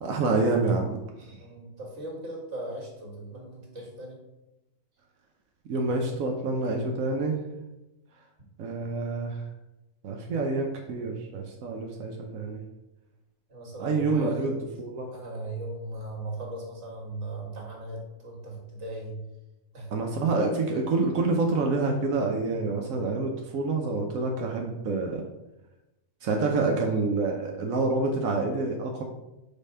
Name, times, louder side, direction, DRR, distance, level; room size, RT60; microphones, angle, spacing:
voice 1, 0.0-1.4 5.7-7.4 8.6-9.4 10.0-12.6 13.8-14.5 14.8-15.1 19.9-25.3 26.2-29.0, right 3 dB, 80° right, 1 dB, 1.2 m, -27 dB
voice 2, 1.4-4.2 13.5-14.6 15.1-19.2 19.7-19.9, right 1 dB, 60° right, -2 dB, 2.2 m, -38 dB
5.4 x 4.2 x 5.5 m, 0.96 s
omnidirectional pair, 1.4 m